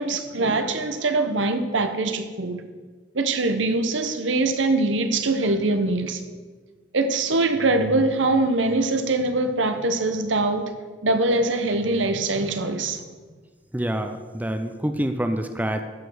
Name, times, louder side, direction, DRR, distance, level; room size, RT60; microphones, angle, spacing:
voice 1, 0.0-2.6 3.1-6.2 6.9-10.7 11.0-13.0, right 2 dB, 90° right, 8 dB, 1.0 m, -23 dB
voice 2, 13.7-15.8, right 1 dB, 10° right, 7 dB, 0.5 m, -26 dB
14.0 x 5.4 x 6.3 m, 1.5 s
head